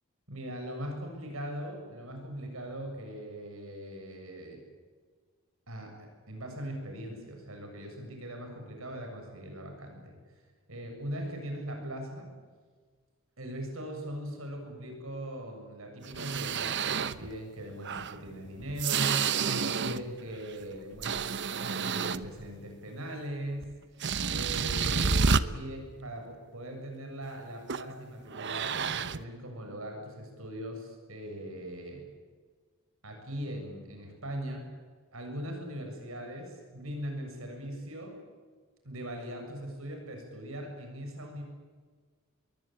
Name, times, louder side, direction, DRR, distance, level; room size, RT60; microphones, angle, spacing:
voice 1, 0.3-4.6 5.7-12.3 13.4-21.1 21.5-23.7 24.3-32.0 33.0-34.7 35.1-38.2 38.8-41.4, right 1 dB, 75° right, 3 dB, 7.2 m, -40 dB
sound 1, 16.0-17.3 17.8-20.2 20.5-22.5 23.6-23.7 24.0-25.4 27.7-27.9 28.3-29.2, right 5 dB, 55° right, 1.0 m, -30 dB
26.5 x 22.5 x 8.8 m, 1.5 s
head